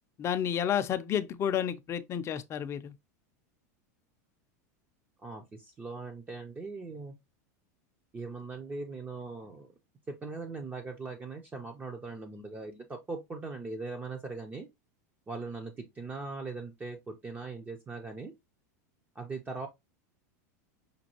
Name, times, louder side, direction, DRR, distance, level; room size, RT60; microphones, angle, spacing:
voice 1, 0.2-2.9, left 9 dB, 30° left, 0.5 m, -31 dB
voice 2, 5.2-7.1 8.1-9.7 10.1-14.7 15.3-18.3 19.2-19.7, right 3 dB, 20° right, 0.6 m, -40 dB
5.2 x 2.2 x 2.9 m
supercardioid pair, 125°, 9 cm